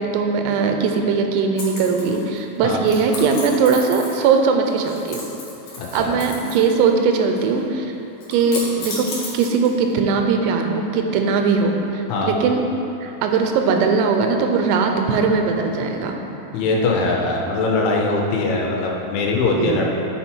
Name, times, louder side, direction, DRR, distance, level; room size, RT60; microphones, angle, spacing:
voice 1, 0.0-5.2 5.9-7.9 8.3-9.1 9.3-12.6 13.0-16.2 19.6-19.9, right 5 dB, 90° right, 4 dB, 3.4 m, -20 dB
sound 1, 1.6-2.4 2.8-4.4 4.6-6.8 7.0-7.6 8.2-9.9, left 3 dB, 60° left, 2.4 m, -33 dB
voice 2, 5.8-6.2 12.1-12.4 16.5-19.9, left 3 dB, 80° left, -1 dB, 2.9 m, -21 dB
8.3 x 5.6 x 4.5 m, 2.9 s
omnidirectional pair, 5.9 m